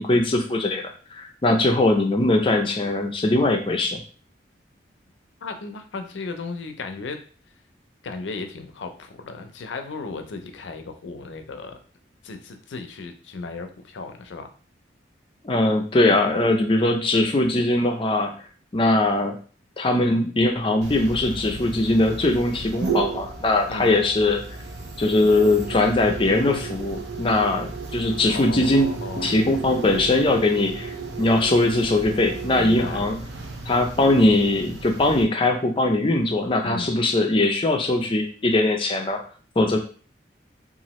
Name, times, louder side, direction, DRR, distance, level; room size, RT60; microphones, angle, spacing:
voice 1, 0.0-4.0 15.4-18.3 18.7-19.4 19.8-24.4 25.0-28.9 29.2-33.2 33.7-39.2 39.6-39.8, left 2 dB, 30° left, 3 dB, 0.4 m, -21 dB
voice 2, 5.4-7.2 8.0-11.8 12.2-14.5 23.7-24.0 28.3-29.4 32.5-33.1 36.6-36.9, left 3 dB, 85° left, 7 dB, 0.5 m, -35 dB
sound 1, 20.8-35.2, right 4 dB, 75° right, 0.6 m, -33 dB
2.9 x 2.4 x 3.0 m, 0.40 s
head